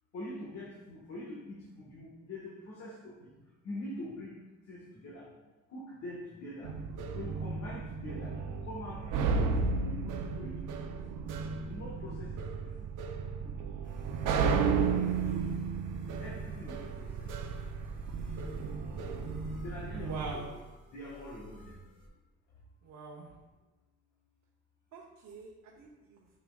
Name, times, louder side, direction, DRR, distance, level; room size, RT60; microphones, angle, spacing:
voice 1, 0.1-3.4 3.6-4.4 4.6-5.3 5.7-6.8 7.1-10.9 11.6-12.9 14.7-15.7 16.2-17.3 19.6-20.6 20.9-21.8, left 1 dB, 60° left, -4 dB, 1.5 m, -44 dB
sound 1, 6.6-20.3, right 5 dB, 85° right, 0.6 m, -33 dB
sound 2, 13.8-22.1, equal, 30° left, 2.0 m, -52 dB
voice 2, 20.0-20.5 22.8-23.3 24.9-26.2, right 4 dB, 65° right, -2 dB, 0.9 m, -43 dB
7.3 x 5.9 x 2.3 m, 1.1 s
cardioid pair, 90°, 30 cm